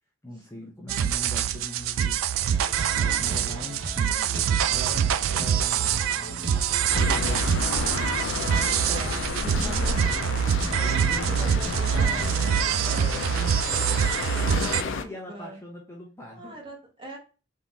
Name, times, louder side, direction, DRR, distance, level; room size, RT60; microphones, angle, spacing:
voice 1, 0.2-4.3 4.7-10.1 10.7-16.6, equal, 15° left, -2 dB, 0.8 m, -41 dB
sound 1, 0.9-14.8, right 9 dB, 90° right, 0.3 m, -25 dB
sound 2, 2.5-12.7, right 1 dB, 65° right, 0.9 m, -38 dB
voice 2, 2.9-3.4 9.5-10.0 10.7-10.9 11.2-12.8 14.3-15.6 16.3-17.2, right 1 dB, 25° right, -2 dB, 1.2 m, -42 dB
sound 3, 6.9-15.0, left 4 dB, 70° left, 0.5 m, -31 dB
3.7 x 2.9 x 4.0 m, 0.34 s
head